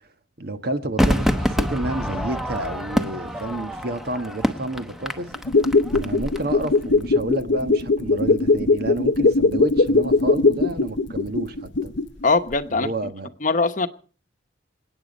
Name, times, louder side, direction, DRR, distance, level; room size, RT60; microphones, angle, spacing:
voice 1, 0.4-5.3 5.9-11.9 12.7-13.3, right 2 dB, 55° right, 1.4 m, -30 dB
Crowd / Fireworks, 1.0-6.4 6.6-6.7, equal, ahead, 1.0 m, -25 dB
sound 1, 5.4-12.2 12.5-12.6, left 3 dB, 65° left, 0.7 m, -20 dB
voice 2, 12.2-12.9 13.4-13.9, left 3 dB, 40° left, 1.0 m, -21 dB
27.5 x 9.3 x 5.3 m
head